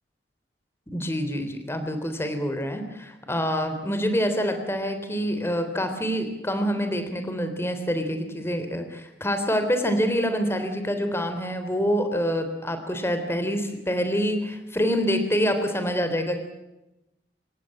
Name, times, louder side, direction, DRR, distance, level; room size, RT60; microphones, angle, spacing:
voice 1, 0.9-16.4, equal, 15° left, 8 dB, 3.5 m, -26 dB
27.5 x 16.0 x 8.5 m, 0.94 s
head